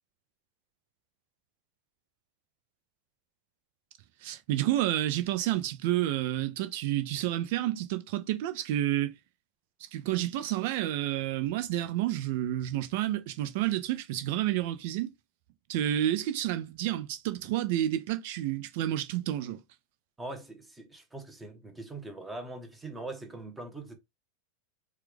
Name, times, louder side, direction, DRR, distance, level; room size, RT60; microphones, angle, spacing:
voice 1, 4.2-9.1 9.9-15.1 15.7-19.6, right 13 dB, 50° right, 0.6 m, -30 dB
voice 2, 20.2-23.9, right 2 dB, 10° right, 1.1 m, -42 dB
4.5 x 2.5 x 3.4 m
figure-of-eight pair, 90°, 0 cm